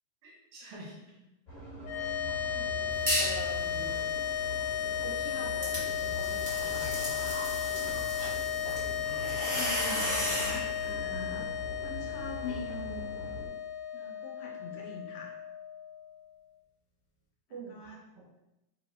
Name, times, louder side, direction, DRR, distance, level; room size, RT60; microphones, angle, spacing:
voice 1, 0.2-1.0 1.9-2.1 2.5-2.6 3.1-4.1 5.0-7.5 8.6-9.8 17.5-18.3, right 1 dB, 75° right, -5 dB, 2.6 m, -46 dB
sound 1, 1.5-13.5, left 1 dB, 20° left, 1.0 m, -42 dB
sound 2, 1.8-16.2, left 9 dB, 60° left, 1.4 m, -34 dB
sound 3, 3.1-3.4 3.8-10.6, equal, 50° right, 0.4 m, -35 dB
voice 2, 9.2-11.5 11.8-13.3 13.9-15.4 17.7-18.0, left 2 dB, 80° left, -1 dB, 1.8 m, -43 dB
4.6 x 3.5 x 2.9 m, 0.92 s
omnidirectional pair, 3.3 m